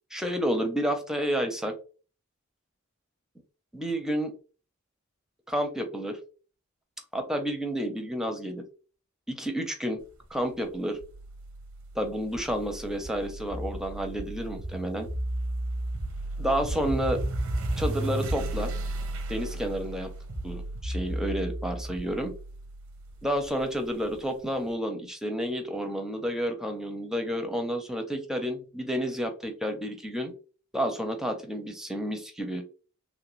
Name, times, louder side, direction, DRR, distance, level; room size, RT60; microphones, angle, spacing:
voice 1, 0.1-1.8 3.7-4.3 5.5-6.2 7.1-8.6 9.3-10.0 10.3-11.0 11.9-15.1 16.4-17.2 17.8-18.7 19.3-20.1 20.4-22.3 23.2-30.3 30.7-32.6, equal, 5° right, 5 dB, 0.5 m, -30 dB
sound 1, 11.0-24.2, right 1 dB, 90° right, 0.6 m, -34 dB
3.2 x 2.4 x 3.0 m, 0.36 s
head